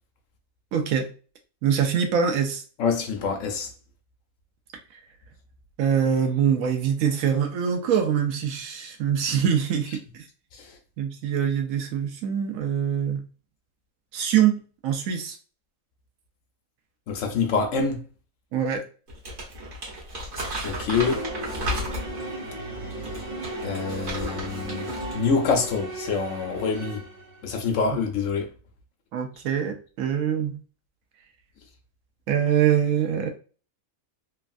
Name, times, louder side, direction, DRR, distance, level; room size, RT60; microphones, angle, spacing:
voice 1, 0.7-1.1 1.6-2.6 5.8-10.0 11.0-13.2 14.1-15.4 18.5-18.8 29.1-30.6 32.3-33.3, right 8 dB, 80° right, 1.0 m, -24 dB
voice 2, 2.8-3.7 10.5-10.7 17.1-18.0 20.6-21.2 23.6-27.0 27.4-28.5, left 5 dB, 70° left, 0.9 m, -26 dB
Crumpling crinkling, 19.1-22.3 22.9-25.2 25.5-25.7, equal, 60° right, 1.4 m, -34 dB
sound 1, 21.0-27.5, right 1 dB, 35° right, 0.5 m, -35 dB
3.1 x 2.3 x 2.5 m
omnidirectional pair, 1.4 m